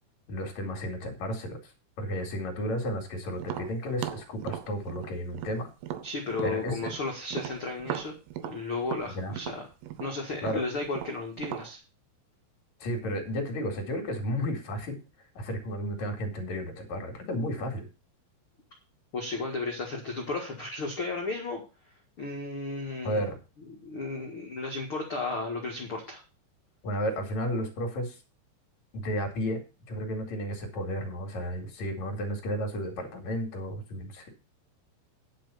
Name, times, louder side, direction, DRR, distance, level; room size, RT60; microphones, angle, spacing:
voice 1, 0.3-1.6 2.0-5.7 6.4-6.8 9.1-9.4 10.4-10.6 12.8-15.0 15.3-17.9 23.0-23.4 26.8-28.2 28.9-29.6 29.9-34.3, equal, 45° left, 3 dB, 3.1 m, -32 dB
Tap, 3.4-7.0 7.3-11.7, right 11 dB, 80° right, 2.4 m, -37 dB
voice 2, 6.0-8.1 8.4-9.7 10.0-11.8 19.1-21.6 22.2-23.2 23.7-26.2, left 3 dB, 75° left, 0 dB, 1.2 m, -34 dB
10.5 x 5.6 x 6.9 m, 0.31 s
omnidirectional pair, 5.6 m